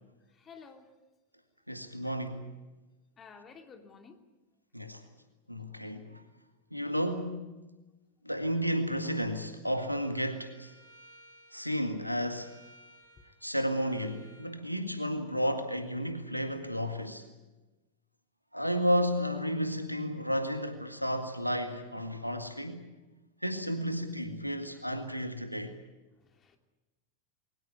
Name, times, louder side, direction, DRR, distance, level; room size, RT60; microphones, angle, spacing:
voice 1, 0.3-0.9 2.0-2.1 3.2-4.2 26.2-26.6, left 5 dB, 25° left, 2.9 m, -52 dB
voice 2, 1.7-2.5 4.7-5.0 5.5-6.2 6.7-7.4 8.2-10.7 11.5-12.5 13.4-17.3 18.5-22.9 23.4-25.8, equal, 90° left, 1.8 m, -32 dB
Bowed string instrument, 9.6-14.5, right 1 dB, 55° right, 5.4 m, -59 dB
22.0 x 19.0 x 9.5 m
figure-of-eight pair, 90°, 0 cm